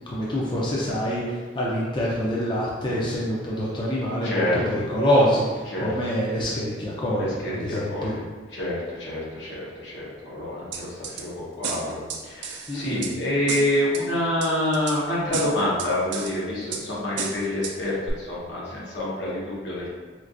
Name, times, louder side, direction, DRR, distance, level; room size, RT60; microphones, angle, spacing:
voice 1, 0.1-1.2 1.5-8.1 12.7-13.0, equal, 25° left, -6 dB, 0.5 m, -25 dB
voice 2, 4.2-4.6 5.7-5.9 7.2-8.2 8.5-19.9, left 1 dB, 75° left, -6 dB, 1.1 m, -27 dB
sound 1, 10.7-11.2 11.6-13.1 13.5-14.0 14.4-15.0 15.3-16.3 16.7-16.8 17.2-17.7 18.1-18.2, right 6 dB, 65° right, 0.4 m, -32 dB
4.4 x 2.4 x 2.5 m, 1.4 s
head